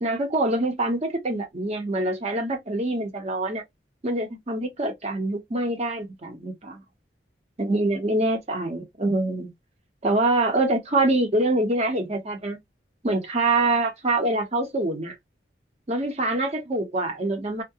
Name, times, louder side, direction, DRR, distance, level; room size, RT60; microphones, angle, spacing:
voice 1, 0.0-3.6 4.0-6.8 7.6-9.5 10.0-12.6 13.0-15.1 15.9-17.6, right 2 dB, 40° right, 0.8 m, -25 dB
2.4 x 2.1 x 2.7 m
head